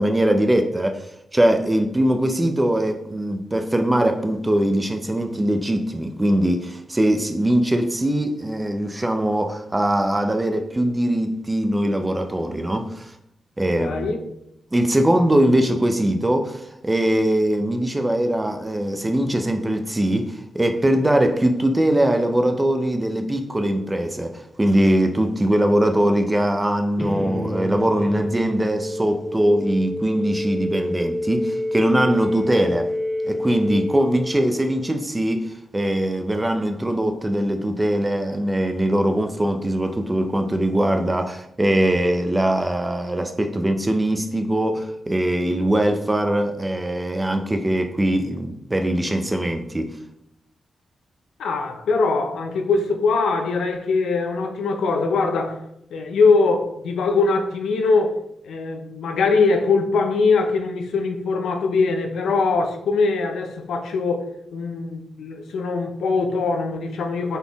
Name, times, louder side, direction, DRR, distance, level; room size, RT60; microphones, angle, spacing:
voice 1, 0.0-13.1 13.6-14.1 14.7-32.9 33.2-50.0, right 1 dB, 20° right, 0.6 m, -21 dB
voice 2, 13.8-14.2 51.4-55.6 55.9-58.2 58.4-67.4, left 4 dB, 85° left, 0.6 m, -22 dB
sound 1, 27.0-34.9, left 1 dB, 20° left, 0.7 m, -28 dB
4.1 x 3.7 x 3.5 m
cardioid pair, 55°, 0 cm